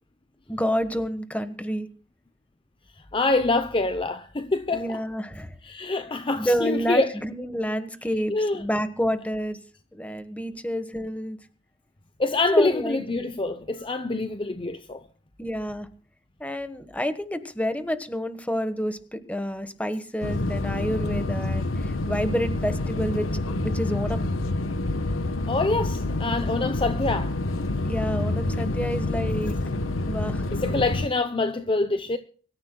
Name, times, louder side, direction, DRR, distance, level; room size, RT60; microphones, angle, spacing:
voice 1, 0.5-1.9 4.7-5.5 6.4-9.6 9.9-11.4 12.5-13.0 15.4-15.9 16.4-24.3 27.8-29.6 30.1-30.5, equal, 5° left, 1.3 m, -29 dB
voice 2, 3.0-5.0 5.6-7.2 8.3-8.7 12.2-15.1 25.5-27.4 30.5-32.2, left 2 dB, 25° left, 0.7 m, -25 dB
sound 1, 20.2-31.1, left 2 dB, 90° left, 1.0 m, -27 dB
24.0 x 14.0 x 2.3 m
head